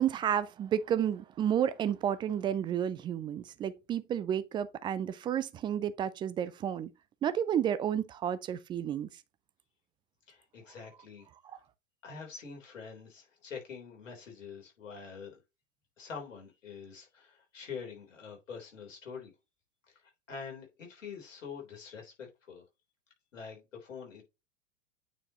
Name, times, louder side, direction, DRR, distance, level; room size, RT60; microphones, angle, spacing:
voice 1, 0.0-6.9 7.2-9.1, right 9 dB, 15° right, 0.3 m, -31 dB
voice 2, 10.3-11.6 12.0-15.4 16.0-19.3 19.9-22.6 23.3-24.2, left 6 dB, 75° left, 3.6 m, -45 dB
9.0 x 4.7 x 2.9 m
hypercardioid pair, 95°, 38 cm